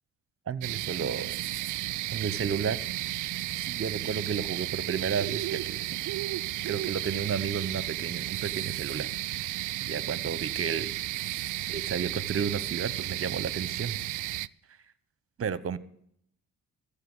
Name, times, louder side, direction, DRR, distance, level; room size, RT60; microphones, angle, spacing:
voice 1, 0.5-1.4 2.1-2.9 3.6-6.0 6.6-9.1 9.3-9.4 9.8-10.9 11.7-14.0 15.4-15.8, right 6 dB, 35° right, 18 dB, 1.0 m, -32 dB
sound 1, 0.6-14.5, right 16 dB, 55° right, 0.5 m, -33 dB
14.5 x 6.8 x 9.8 m, 0.69 s
supercardioid pair, 65°, 38 cm